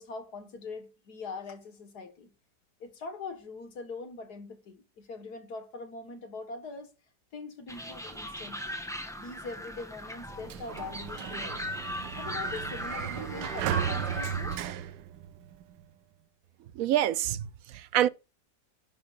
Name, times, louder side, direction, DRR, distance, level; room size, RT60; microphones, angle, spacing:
voice 1, 0.0-2.3 2.8-6.9 7.3-8.8 9.1-11.7 12.2-14.6, left 4 dB, 65° left, 2.2 m, -42 dB
sound 1, 7.7-14.6, equal, ahead, 1.4 m, -38 dB
Sliding door, 10.2-15.8, right 10 dB, 85° right, 1.4 m, -36 dB
voice 2, 16.8-18.1, right 12 dB, 65° right, 0.9 m, -27 dB
10.5 x 10.5 x 2.5 m
omnidirectional pair, 1.8 m